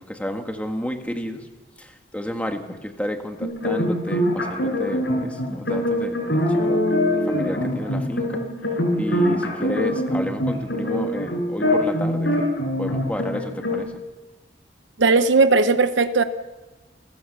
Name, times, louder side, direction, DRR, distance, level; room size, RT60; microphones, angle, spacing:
voice 1, 0.0-1.5 1.8-6.8 7.1-8.4 9.0-12.5 12.8-14.0, equal, 5° left, 4 dB, 1.7 m, -31 dB
sound 1, 3.4-13.8, left 1 dB, 70° left, 6.4 m, -23 dB
voice 2, 15.0-16.2, right 3 dB, 80° right, 10 dB, 0.9 m, -17 dB
29.0 x 15.0 x 6.8 m, 1.2 s
head